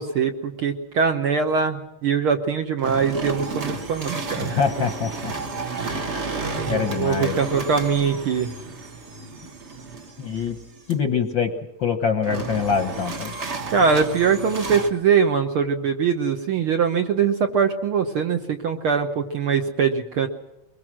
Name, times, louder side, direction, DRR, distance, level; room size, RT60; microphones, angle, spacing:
voice 1, 0.0-4.6 6.5-8.5 13.7-20.3, right 6 dB, 60° right, 5 dB, 1.5 m, -22 dB
sound 1, 2.8-10.9 12.2-14.9, right 3 dB, 45° right, 0.9 m, -32 dB
voice 2, 4.4-5.3 5.6-5.8 6.7-7.4 10.2-10.6 10.9-11.5 11.8-13.3, left 6 dB, 55° left, 7 dB, 1.3 m, -24 dB
22.5 x 21.0 x 6.2 m, 0.96 s
omnidirectional pair, 3.4 m